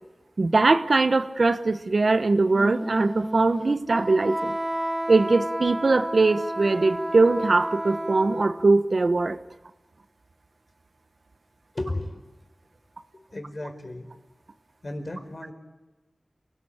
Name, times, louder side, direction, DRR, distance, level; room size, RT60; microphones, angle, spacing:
voice 1, 0.4-4.5 5.1-9.4, right 3 dB, 65° right, 11 dB, 1.1 m, -21 dB
Wind instrument woodwind instrument, 2.5-8.7, right 1 dB, 15° right, 1.1 m, -31 dB
voice 2, 11.7-12.2 13.1-14.1 14.8-15.5, left 1 dB, 50° left, 6 dB, 4.5 m, -34 dB
28.0 x 18.5 x 8.7 m, 1.2 s
wide cardioid pair, 70°, 0 cm